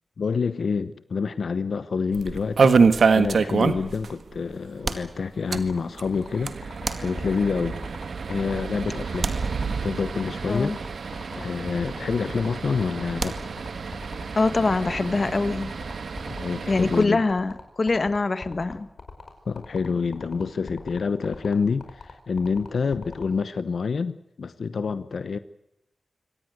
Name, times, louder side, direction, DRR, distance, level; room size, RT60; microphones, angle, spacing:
voice 1, 0.2-2.8 3.1-7.8 8.3-9.3 9.8-10.8 11.0-13.4 16.4-17.2 19.5-25.4, left 5 dB, 80° left, 13 dB, 1.0 m, -27 dB
sound 1, 2.1-4.1 4.3-4.4 4.7-4.8 5.4-17.0, right 5 dB, 80° right, 1.6 m, -26 dB
sound 2, 4.8-5.8 6.8-7.7 9.2-10.3 13.2-14.0, right 3 dB, 50° right, 2.2 m, -35 dB
sound 3, 5.5-23.2, left 4 dB, 60° left, 5.1 m, -42 dB
voice 2, 10.4-10.8 14.4-15.7 16.7-18.9, left 3 dB, 45° left, 13 dB, 1.5 m, -24 dB
25.5 x 18.0 x 7.9 m, 0.85 s
wide cardioid pair, 110°, 0 cm